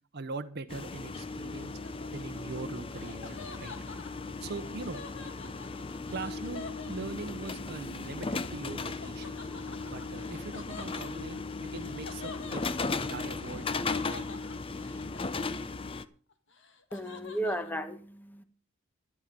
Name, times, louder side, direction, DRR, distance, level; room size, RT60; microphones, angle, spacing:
voice 1, 0.1-1.8 2.1-3.8 4.4-5.0 6.1-9.4 9.9-13.7 14.1-14.3, right 3 dB, 50° right, 0.8 m, -41 dB
sound 1, 0.7-16.0, left 3 dB, 25° left, 0.6 m, -37 dB
Laughter, 1.5-7.6 9.0-16.0 16.3-17.7, left 4 dB, 55° left, 1.8 m, -48 dB
voice 2, 16.9-18.4, right 1 dB, 10° left, 1.2 m, -34 dB
12.0 x 11.0 x 5.2 m
head